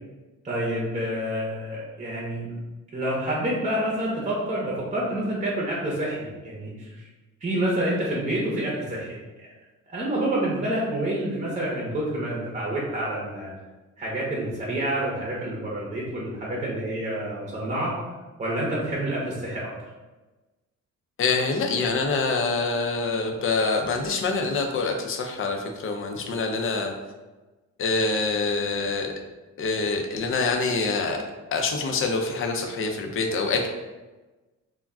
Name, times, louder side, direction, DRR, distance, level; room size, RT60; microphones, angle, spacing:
voice 1, 0.4-2.5 2.9-7.1 7.4-9.5 9.9-13.5 14.0-17.9 18.4-19.7, right 1 dB, 25° right, -4 dB, 0.7 m, -28 dB
voice 2, 21.2-26.9 27.8-29.1 29.6-31.2 31.5-33.7, left 4 dB, 45° left, 3 dB, 0.5 m, -25 dB
2.3 x 2.1 x 3.6 m, 1.2 s
cardioid pair, 90°, 30 cm